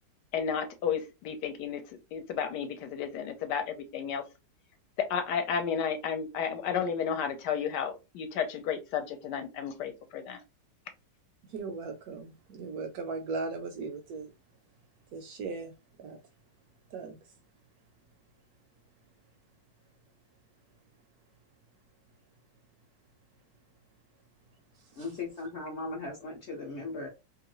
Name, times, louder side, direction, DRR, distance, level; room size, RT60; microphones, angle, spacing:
voice 1, 0.3-1.8 2.1-4.2 5.1-10.4, left 7 dB, 75° left, 1.2 m, -32 dB
voice 2, 11.5-14.3 15.1-15.7 16.0-16.2 16.9-17.2 25.0-25.1, right 4 dB, 70° right, 0.9 m, -37 dB
voice 3, 25.0-27.1, left 3 dB, 60° left, 0.7 m, -38 dB
3.0 x 2.5 x 2.9 m
omnidirectional pair, 1.9 m